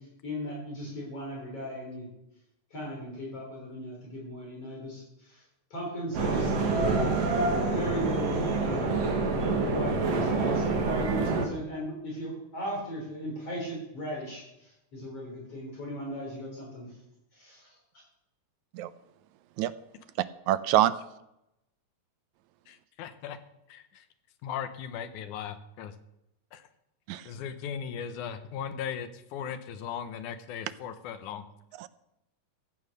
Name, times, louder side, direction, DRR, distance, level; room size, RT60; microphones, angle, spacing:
voice 1, 0.2-2.1 2.7-5.4 5.7-6.5 7.2-9.1 9.5-16.9 17.3-17.8, equal, 45° left, -2 dB, 4.4 m, -37 dB
sound 1, 6.1-11.5, right 3 dB, 55° right, 2.7 m, -27 dB
voice 2, 20.5-20.9 27.1-27.2 31.8-31.9, right 13 dB, 80° right, 14 dB, 1.8 m, -25 dB
voice 3, 22.7-23.4 23.7-24.0 24.4-25.9 26.5-26.6 27.3-31.5, left 8 dB, 75° left, 10 dB, 2.3 m, -38 dB
14.5 x 8.7 x 6.6 m, 0.86 s
omnidirectional pair, 3.6 m